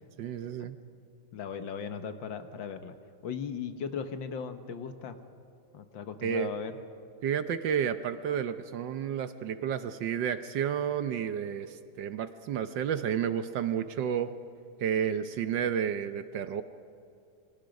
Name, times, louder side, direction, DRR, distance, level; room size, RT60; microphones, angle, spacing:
voice 1, 0.2-0.8 6.2-6.5 7.2-14.3 14.8-16.6, right 8 dB, 65° right, 11 dB, 1.3 m, -31 dB
voice 2, 1.3-3.0 3.2-5.2 5.7-6.7, left 6 dB, 65° left, 9 dB, 1.7 m, -37 dB
28.0 x 23.5 x 5.2 m, 2.5 s
omnidirectional pair, 2.3 m